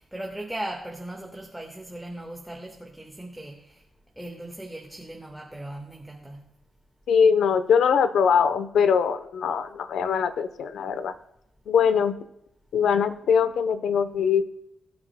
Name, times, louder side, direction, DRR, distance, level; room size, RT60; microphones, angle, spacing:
voice 1, 0.0-3.5 4.2-6.4, right 1 dB, 5° right, 1 dB, 1.5 m, -38 dB
voice 2, 7.1-11.1 11.7-12.2 12.7-14.4, left 6 dB, 90° left, 12 dB, 0.8 m, -22 dB
20.5 x 8.8 x 2.2 m, 0.79 s
cardioid pair, 85°, 0 cm